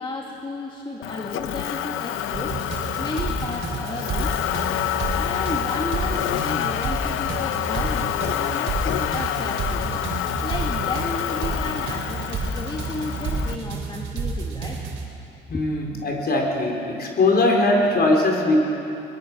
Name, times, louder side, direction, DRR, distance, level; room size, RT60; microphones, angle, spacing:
voice 1, 0.0-4.4 5.1-10.1 10.4-14.8 15.5-15.7, left 2 dB, 25° left, -1 dB, 2.1 m, -33 dB
Motor vehicle (road), 1.0-13.5, left 12 dB, 85° left, 0.7 m, -28 dB
sound 1, 2.3-15.1, right 4 dB, 75° right, 3.4 m, -30 dB
voice 2, 15.5-18.6, left 2 dB, 55° left, 1 dB, 4.4 m, -20 dB
21.5 x 21.5 x 6.3 m, 2.8 s
cardioid pair, 90°, 20 cm